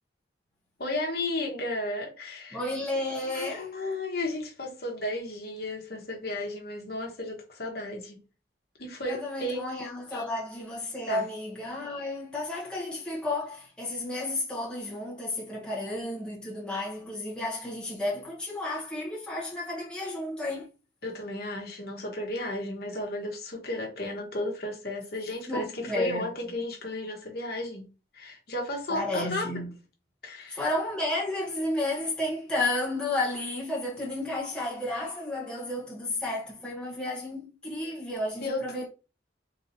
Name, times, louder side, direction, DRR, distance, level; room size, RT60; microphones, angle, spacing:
voice 1, 0.8-2.6 3.2-8.2 8.8-9.7 10.1-10.3 11.1-11.2 21.0-27.8 28.1-29.5 30.2-30.6 38.4-38.9, left 1 dB, 55° left, 1.0 m, -34 dB
voice 2, 2.5-3.8 9.1-20.7 25.5-26.3 28.9-29.7 30.5-38.9, left 1 dB, 5° left, 0.9 m, -32 dB
3.8 x 3.0 x 2.6 m
head